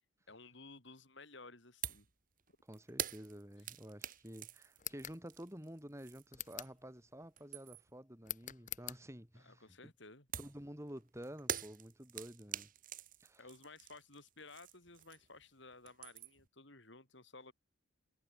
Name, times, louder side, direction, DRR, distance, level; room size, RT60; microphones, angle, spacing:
voice 1, 0.3-2.1 9.4-10.3 13.4-17.5, left 3 dB, 60° left, 5.2 m, -56 dB
sound 1, 1.8-2.1 2.4-6.9 7.2-8.0 10.3-15.4 15.7-16.5, right 9 dB, 40° right, 2.1 m, -46 dB
voice 2, 2.6-9.9 10.4-12.7 13.2-13.5, equal, 15° right, 3.8 m, -51 dB
sound 2, 4.8-5.2 6.3-6.8 8.2-9.0, left 13 dB, 40° left, 1.1 m, -45 dB
head